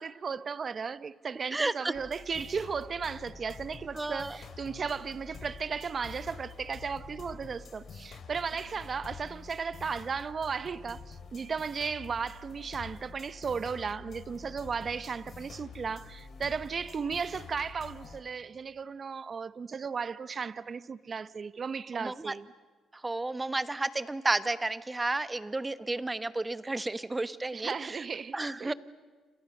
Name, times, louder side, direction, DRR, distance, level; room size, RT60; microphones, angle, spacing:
voice 1, 0.0-22.5 27.5-28.7, right 5 dB, 45° right, 0.9 m, -35 dB
voice 2, 1.5-1.9 3.9-4.4 21.9-22.3 22.9-28.0 28.3-28.7, right 2 dB, 20° right, 1.1 m, -32 dB
sound 1, 1.9-18.2, left 5 dB, 60° left, 3.0 m, -47 dB
29.0 x 27.0 x 6.6 m
cardioid pair, 90°, 0 cm